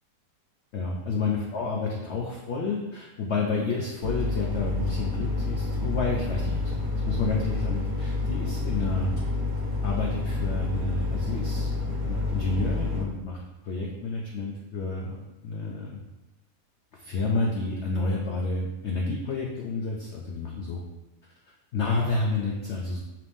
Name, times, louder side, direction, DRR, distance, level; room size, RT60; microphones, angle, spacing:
voice 1, 0.7-9.1 9.8-11.7 12.0-16.0 16.9-20.8 21.7-23.0, left 3 dB, 90° left, -1 dB, 0.6 m, -30 dB
sound 1, 4.0-13.0, left 3 dB, 70° right, 1.6 m, -29 dB
5.6 x 3.5 x 2.6 m, 1.0 s
omnidirectional pair, 1.8 m